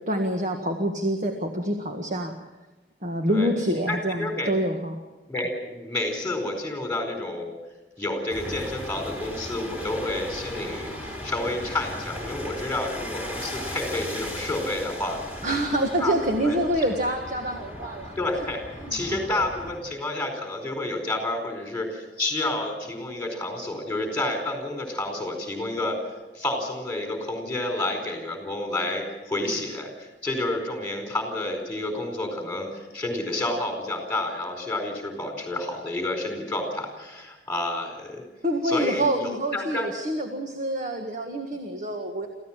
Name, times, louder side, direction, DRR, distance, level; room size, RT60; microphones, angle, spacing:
voice 1, 0.1-2.3 3.0-5.0 15.4-18.1 18.9-19.0 38.4-42.3, right 1 dB, 45° right, 3 dB, 1.8 m, -26 dB
voice 2, 3.9-4.5 5.3-7.5 8.0-15.4 16.0-16.6 18.2-18.6 18.9-26.0 26.3-38.2 38.6-39.9, left 2 dB, 10° left, 2 dB, 4.4 m, -30 dB
sound 1, 8.3-19.8, left 1 dB, 10° right, 3.7 m, -37 dB
27.0 x 15.0 x 7.5 m, 1.2 s
head